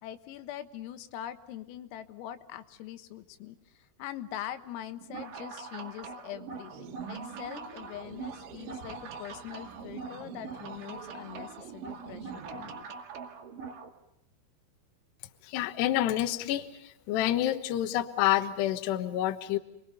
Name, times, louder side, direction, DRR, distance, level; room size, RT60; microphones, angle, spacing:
voice 1, 0.0-12.9, left 12 dB, 85° left, 9 dB, 4.0 m, -43 dB
sound 1, 5.0-13.9, right 5 dB, 50° right, 3.0 m, -43 dB
sound 2, 6.7-12.8, right 7 dB, 85° right, 3.8 m, -48 dB
voice 2, 15.5-16.7 17.1-19.6, left 13 dB, 70° left, 8 dB, 3.0 m, -28 dB
28.5 x 22.5 x 6.9 m, 0.87 s
omnidirectional pair, 5.9 m